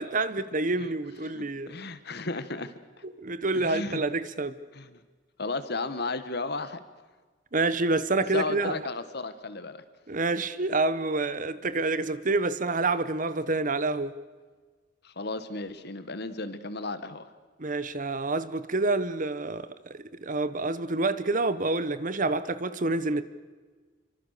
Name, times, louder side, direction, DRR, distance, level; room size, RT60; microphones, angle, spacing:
voice 1, 0.0-1.8 3.0-4.6 7.5-8.7 10.1-14.1 17.6-19.7 19.9-23.2, right 3 dB, 45° right, 1.1 m, -28 dB
voice 2, 1.2-2.7 3.5-4.0 4.7-5.0 5.4-6.8 8.3-9.8 15.0-17.3, left 3 dB, 60° left, 1.7 m, -34 dB
28.5 x 25.0 x 6.8 m
head